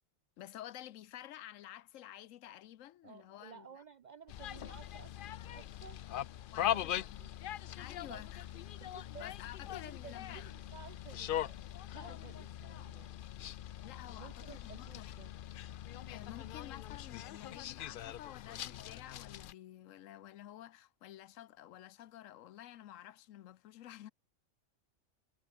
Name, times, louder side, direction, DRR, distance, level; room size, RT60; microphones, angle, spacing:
voice 1, 0.4-3.7 6.5-7.2 7.8-8.5 9.2-10.5 13.8-15.1 16.1-24.1, left 12 dB, 85° left, 1.0 m, -51 dB
voice 2, 3.0-6.0 6.6-7.3 8.0-8.3 8.8-9.3 9.6-11.6 11.9-13.1 14.2-15.3, right 7 dB, 70° right, 0.4 m, -55 dB
sound 1, 4.3-19.5, left 11 dB, 65° left, 0.5 m, -41 dB
omnidirectional pair, 1.3 m